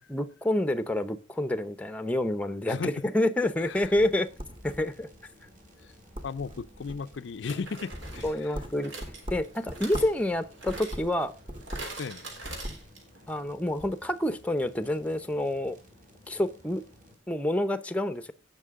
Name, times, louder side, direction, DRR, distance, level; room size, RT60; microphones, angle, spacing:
voice 1, 0.1-4.3 4.6-5.1 8.2-8.9 9.3-11.3 13.3-15.8 16.3-16.8 17.3-18.3, left 1 dB, 5° left, 0.7 m, -28 dB
sound 1, 3.4-17.2, equal, 45° right, 3.7 m, -56 dB
voice 2, 3.6-3.9 5.8-5.9 6.2-8.6 12.0-12.3, left 5 dB, 65° left, 0.4 m, -36 dB
sound 2, 3.8-5.2 5.6-5.9 6.1-7.2 7.6-10.2 10.6-12.0 12.3-12.9, equal, 25° right, 1.3 m, -40 dB
sound 3, 6.2-6.3 7.5-13.2 13.5-13.6 13.8-13.9, right 2 dB, 75° right, 3.4 m, -44 dB
17.5 x 6.0 x 3.6 m
head